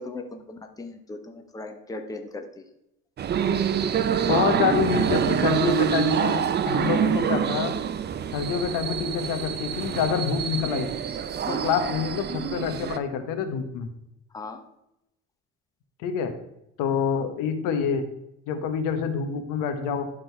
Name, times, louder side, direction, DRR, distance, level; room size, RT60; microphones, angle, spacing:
voice 1, 0.0-2.5 11.5-11.7 14.3-14.6, left 2 dB, 10° left, 5 dB, 0.8 m, -37 dB
sound 1, 3.2-13.0, right 8 dB, 35° right, 0.5 m, -26 dB
voice 2, 4.3-7.8 8.3-10.9 11.5-13.9 16.0-16.3 16.8-18.1 18.5-20.1, left 6 dB, 80° left, 8 dB, 1.1 m, -26 dB
11.0 x 3.9 x 4.5 m, 0.84 s
cardioid pair, 115°, 32 cm